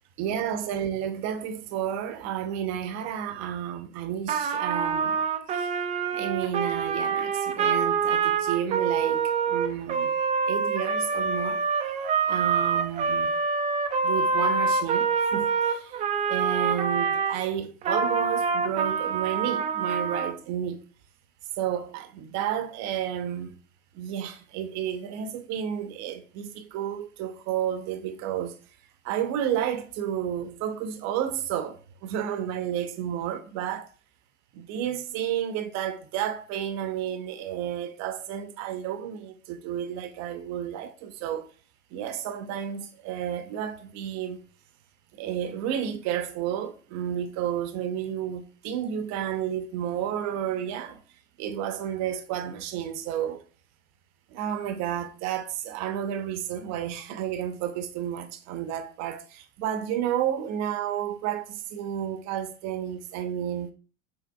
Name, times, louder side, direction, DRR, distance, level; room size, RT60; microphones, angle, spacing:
voice 1, 0.2-5.2 5.5-5.7 6.1-10.1 10.5-11.6 12.3-13.4 14.0-16.0 16.3-20.8 21.6-23.5 23.9-28.6 29.0-33.9 34.5-41.5 41.9-44.4 45.1-51.0 51.4-53.4 54.3-63.7, right 10 dB, 40° right, 0.7 m, -31 dB
Trumpet, 4.3-17.4 17.8-20.4, right 5 dB, 20° right, 0.4 m, -26 dB
5.7 x 3.6 x 2.3 m
hypercardioid pair, 90°, 40 cm